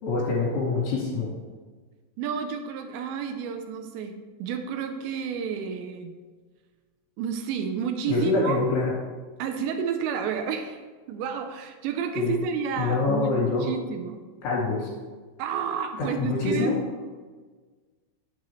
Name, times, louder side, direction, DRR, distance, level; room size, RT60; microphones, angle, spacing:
voice 1, 0.0-1.3 8.1-8.9 12.2-12.3 12.8-13.7 14.4-14.9 16.0-16.8, left 3 dB, 60° left, -5 dB, 4.3 m, -25 dB
voice 2, 2.2-6.2 7.2-8.6 9.4-10.8 11.1-13.3 13.6-14.2 15.4-16.7, right 7 dB, 80° right, 6 dB, 2.7 m, -30 dB
11.0 x 7.6 x 3.1 m, 1.4 s
omnidirectional pair, 5.7 m